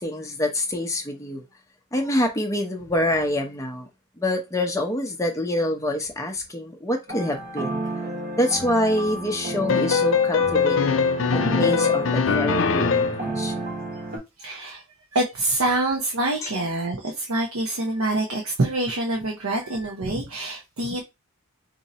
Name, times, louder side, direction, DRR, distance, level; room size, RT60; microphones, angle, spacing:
voice 1, 0.0-1.4 1.9-3.9 4.2-7.8 8.4-11.0 11.5-13.7, left 1 dB, 15° left, 0.6 m, -26 dB
sound 1, 7.1-14.2, right 1 dB, 40° right, 1.0 m, -31 dB
sound 2, 9.7-13.3, left 6 dB, 60° left, 0.4 m, -21 dB
voice 2, 14.4-14.8 15.1-21.0, right 2 dB, 75° right, 0.8 m, -26 dB
2.7 x 2.6 x 4.1 m
head